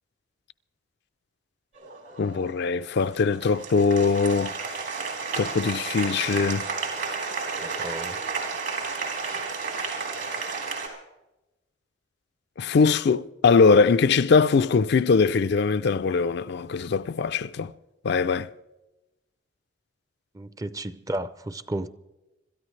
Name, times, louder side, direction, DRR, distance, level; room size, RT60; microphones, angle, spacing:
Applause, 1.7-10.9, right 4 dB, 70° right, 3.9 m, -32 dB
voice 1, 2.2-4.5 5.4-6.7 12.6-17.7 18.0-18.5, left 4 dB, 60° left, 0.4 m, -21 dB
voice 2, 7.6-8.2 20.3-21.9, right 1 dB, 20° right, 0.5 m, -33 dB
26.0 x 13.5 x 3.2 m
head